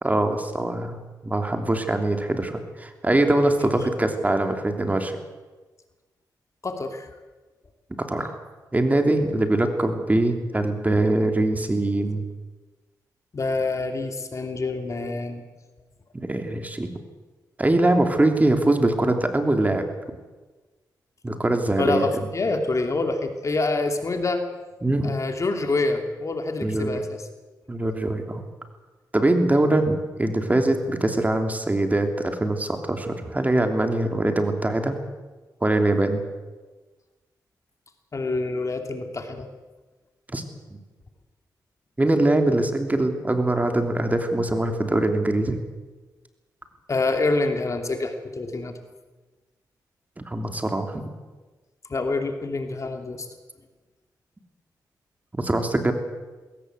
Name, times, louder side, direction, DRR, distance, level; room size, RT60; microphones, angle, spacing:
voice 1, 0.0-1.0 1.2-5.1 8.0-8.3 8.7-12.3 16.1-16.9 17.6-19.8 21.2-22.3 24.8-25.1 26.6-27.0 27.7-28.4 29.1-34.9 35.6-36.2 40.3-40.4 42.0-45.6 50.3-51.0 55.4-55.9, right 2 dB, 20° right, 6 dB, 3.0 m, -22 dB
voice 2, 6.6-7.1 13.3-15.4 21.8-24.4 25.0-27.3 38.1-39.5 46.9-48.7 51.9-53.3, left 3 dB, 45° left, 5 dB, 2.7 m, -26 dB
20.5 x 18.0 x 8.1 m, 1.2 s
cardioid pair, 70°, 7 cm